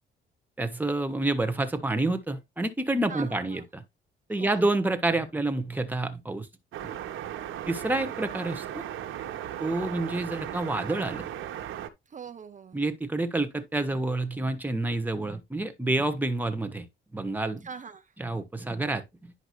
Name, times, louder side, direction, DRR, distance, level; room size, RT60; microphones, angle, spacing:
voice 1, 0.6-3.8 4.3-6.5 6.8-6.9 7.7-8.8 9.6-11.3 12.7-16.9 17.1-17.7 18.2-19.3, right 2 dB, 10° right, 1.5 m, -28 dB
voice 2, 3.1-3.6 4.4-4.8 12.1-12.8 17.6-18.1, right 6 dB, 40° right, 0.8 m, -42 dB
sound 1, 6.7-11.9, right 11 dB, 80° right, 1.2 m, -36 dB
10.5 x 5.3 x 3.2 m
cardioid pair, 90°, 20 cm